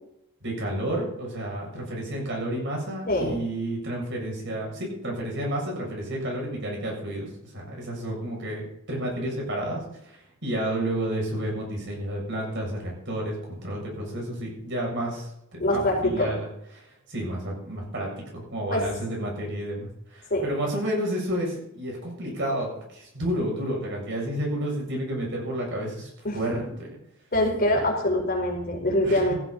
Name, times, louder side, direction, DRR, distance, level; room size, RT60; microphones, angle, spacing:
voice 1, 0.4-16.5 16.7-27.0 29.0-29.3, right 1 dB, 55° right, -1 dB, 7.3 m, -31 dB
voice 2, 3.1-3.4 15.6-16.4 18.7-18.9 20.3-20.5 26.2-26.4 27.3-29.3, left 1 dB, 45° left, 0 dB, 4.6 m, -24 dB
16.0 x 14.0 x 4.2 m, 0.76 s
head